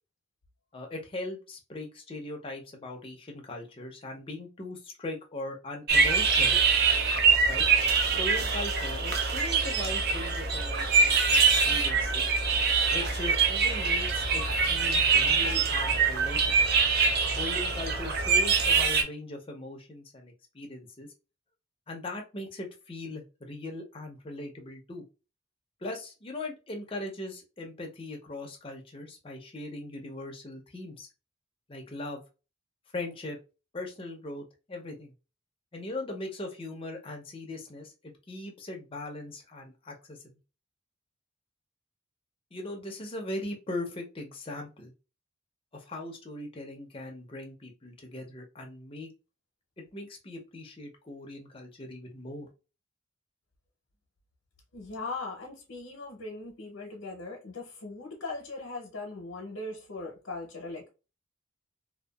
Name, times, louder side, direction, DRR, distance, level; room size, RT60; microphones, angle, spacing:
voice 1, 0.7-6.6 7.5-7.7 8.2-12.3 12.9-14.4 14.7-16.7 17.4-21.1 21.9-25.0 25.8-31.1 31.7-32.2 32.9-33.4 33.7-35.1 35.7-40.4 42.5-44.9 45.7-49.1 49.9-52.5, left 2 dB, 25° left, 0.5 m, -39 dB
sound 1, 5.9-19.0, right 5 dB, 50° right, 0.4 m, -24 dB
voice 2, 54.7-60.9, left 3 dB, 80° left, 0.7 m, -39 dB
2.6 x 2.2 x 2.2 m
head